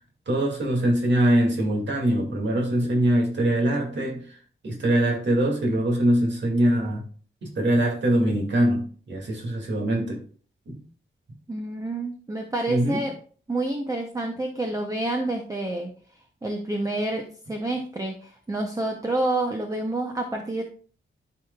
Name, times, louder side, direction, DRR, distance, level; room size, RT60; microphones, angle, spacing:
voice 1, 0.3-4.4 4.6-7.1 7.4-10.2 10.7-10.8 12.7-13.0, right 1 dB, 60° right, 0 dB, 2.2 m, -23 dB
voice 2, 11.5-13.1 13.5-15.9 16.4-20.6, right 2 dB, 15° right, 2 dB, 0.7 m, -28 dB
12.0 x 4.8 x 2.3 m, 0.43 s
wide cardioid pair, 175°, 21 cm